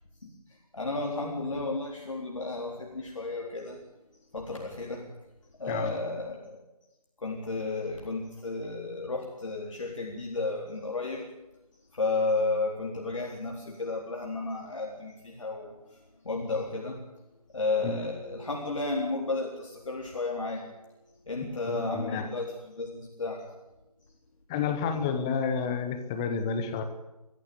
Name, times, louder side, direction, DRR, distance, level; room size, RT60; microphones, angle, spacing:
voice 1, 0.7-3.8 4.3-5.1 5.6-6.6 7.2-11.3 11.9-15.7 16.2-17.0 17.5-20.7 21.3-22.5 22.8-23.4, left 3 dB, 55° left, 0 dB, 3.9 m, -32 dB
voice 2, 5.7-6.0 17.8-18.0 21.7-22.3 24.5-26.8, left 6 dB, 10° left, 8 dB, 0.8 m, -30 dB
22.0 x 14.5 x 8.6 m, 0.98 s
figure-of-eight pair, 160°, 19 cm